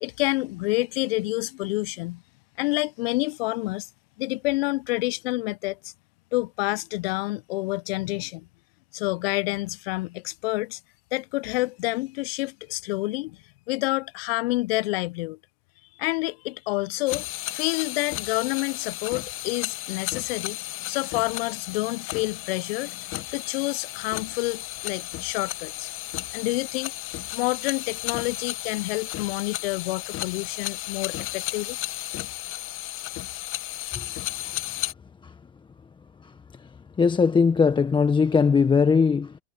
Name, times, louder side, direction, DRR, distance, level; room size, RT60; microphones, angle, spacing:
voice 1, 0.0-2.2 2.6-3.9 4.2-5.9 6.3-8.5 8.9-10.8 11.1-13.4 13.7-15.4 16.0-17.3 17.5-25.9 26.3-26.9 27.3-31.8, left 21 dB, 50° left, 0.7 m, -28 dB
sound 1, 17.1-34.9, left 17 dB, 35° left, 1.6 m, -34 dB
voice 2, 33.9-34.6 35.2-35.3 36.2-36.7 37.0-39.4, left 5 dB, 15° left, 1.2 m, -21 dB
hypercardioid pair, 115°, 37 cm